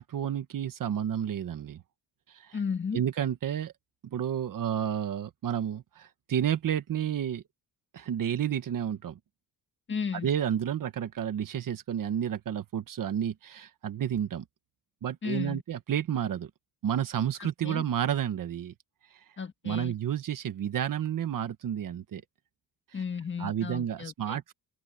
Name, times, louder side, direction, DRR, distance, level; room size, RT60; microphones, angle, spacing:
voice 1, 0.0-1.8 2.3-2.6 2.9-3.7 4.1-7.4 7.9-9.2 10.2-14.4 15.0-16.5 16.8-18.7 19.6-22.2 22.9-23.0 23.4-24.5, right 9 dB, 50° right, 1.4 m, -31 dB
voice 2, 2.5-3.0 9.9-10.3 15.2-15.6 17.4-17.8 19.4-19.9 22.9-24.4, left 6 dB, 30° left, 1.6 m, -34 dB
open air
cardioid pair, 170°, 41 cm